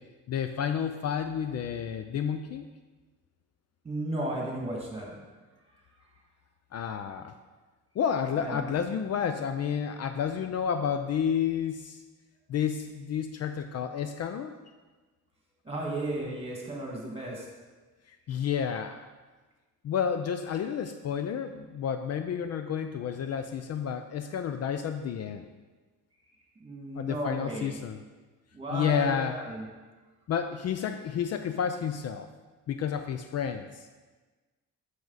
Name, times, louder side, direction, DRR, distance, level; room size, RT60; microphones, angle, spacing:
voice 1, 0.3-2.7 6.7-7.3 8.0-12.0 12.5-14.5 18.1-19.1 19.8-25.5 27.0-28.0 28.7-29.3 30.3-32.3 32.7-33.9, left 8 dB, 50° left, 8 dB, 0.4 m, -30 dB
voice 2, 3.8-5.2 6.0-6.1 8.4-8.7 15.6-17.5 26.6-27.8 28.5-29.7, right 1 dB, 20° right, -2 dB, 2.0 m, -34 dB
7.0 x 6.4 x 4.0 m, 1.3 s
cardioid pair, 125°, 33 cm